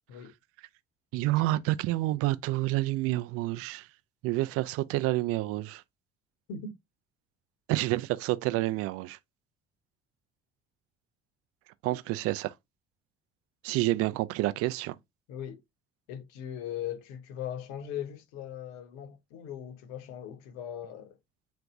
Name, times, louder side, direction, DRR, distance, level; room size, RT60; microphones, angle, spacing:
voice 1, 1.1-3.9 4.2-5.8 7.7-9.2 11.8-12.5 13.6-15.0, right 17 dB, 55° right, 0.4 m, -28 dB
voice 2, 15.3-15.6 16.1-21.2, left 9 dB, 65° left, 0.7 m, -39 dB
3.3 x 2.0 x 3.6 m
figure-of-eight pair, 55°, 29 cm